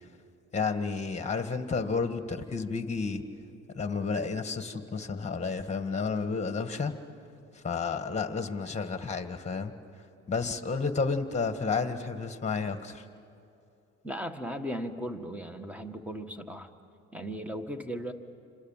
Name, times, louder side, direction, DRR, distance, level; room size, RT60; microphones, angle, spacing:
voice 1, 0.5-3.2 3.7-6.9 7.6-9.7 10.3-13.0, left 4 dB, 20° left, 8 dB, 1.9 m, -31 dB
voice 2, 14.0-16.7 17.1-18.1, equal, 5° right, 7 dB, 1.7 m, -37 dB
28.5 x 26.0 x 7.5 m, 2.6 s
cardioid pair, 90°, 30 cm